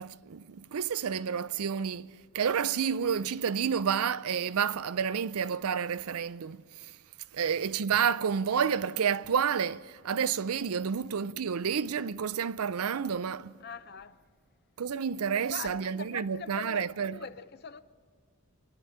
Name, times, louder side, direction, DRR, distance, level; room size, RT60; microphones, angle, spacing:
voice 1, 0.0-6.9 7.3-13.5 14.8-17.2, right 7 dB, 85° right, 0.5 m, -30 dB
voice 2, 13.6-14.3 15.3-17.8, left 5 dB, 45° left, 0.6 m, -43 dB
25.0 x 11.0 x 10.0 m
head